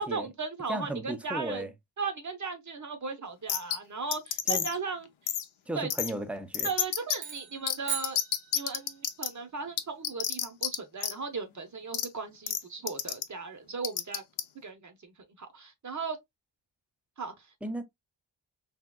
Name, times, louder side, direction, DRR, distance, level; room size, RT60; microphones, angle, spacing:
voice 1, 0.0-1.7 2.0-5.1 5.8-5.9 6.6-8.2 8.5-14.2 14.6-16.2 17.2-17.4, right 4 dB, 40° right, 0.6 m, -37 dB
voice 2, 0.7-1.7 4.5-4.7 5.7-6.7 17.6-17.8, right 1 dB, 5° right, 0.3 m, -35 dB
sound 1, 3.5-3.8 4.1-4.8 5.3-5.4 5.9-6.1 6.5-7.2 7.7-7.8 8.0-9.3 9.8-10.7 11.0-11.1 11.9-12.0 12.5-12.6 12.9-13.2 13.8-14.4, left 9 dB, 85° left, 0.6 m, -29 dB
sound 2, 7.2-9.1, right 7 dB, 90° right, 1.4 m, -39 dB
3.5 x 2.7 x 2.2 m
wide cardioid pair, 150°, 47 cm